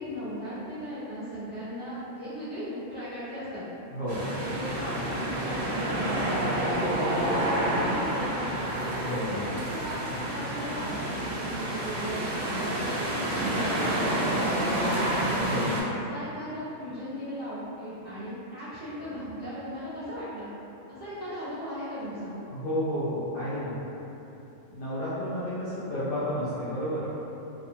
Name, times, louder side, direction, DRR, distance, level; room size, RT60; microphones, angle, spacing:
voice 1, 0.0-3.6 4.3-8.5 9.4-15.3 16.1-20.5 20.9-22.4, equal, 5° right, -17 dB, 1.2 m, -37 dB
voice 2, 3.9-4.3 9.0-9.5 15.4-15.8 22.5-23.8 24.7-27.1, equal, 85° left, -11 dB, 0.4 m, -31 dB
sound 1, 4.1-15.8, right 1 dB, 60° right, 0.7 m, -29 dB
2.4 x 2.3 x 2.7 m, 3.0 s
omnidirectional pair, 1.5 m